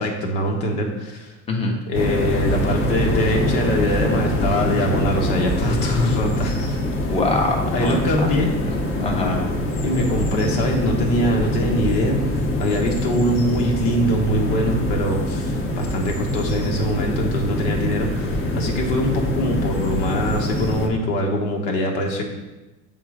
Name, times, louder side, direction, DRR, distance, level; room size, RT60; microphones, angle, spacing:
voice 1, 0.0-1.3 1.9-6.8 7.7-8.8 9.8-22.2, equal, 75° left, 0 dB, 1.5 m, -23 dB
voice 2, 1.5-1.8 7.1-8.5 9.0-9.5, left 2 dB, 15° left, 0 dB, 1.0 m, -24 dB
sound 1, 1.9-20.9, left 1 dB, 40° left, 1.2 m, -24 dB
7.1 x 3.8 x 5.0 m, 1.1 s
supercardioid pair, 115°, 34 cm